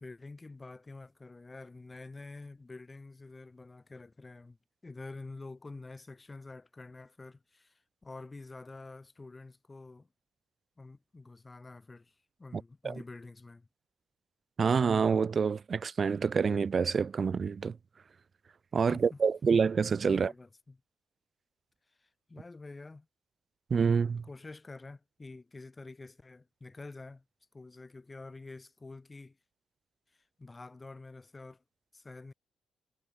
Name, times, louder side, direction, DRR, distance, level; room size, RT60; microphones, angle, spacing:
voice 1, 0.0-4.6 4.8-10.1 10.8-13.7 18.9-19.2 20.1-20.8 21.9-23.1 24.2-27.2 27.5-29.4 30.1-31.6 31.9-32.3, left 3 dB, 15° left, 2.8 m, -48 dB
voice 2, 12.5-12.9 14.6-17.8 18.7-20.3 23.7-24.2, right 5 dB, 30° right, 0.4 m, -27 dB
cardioid pair, 175°, 0 cm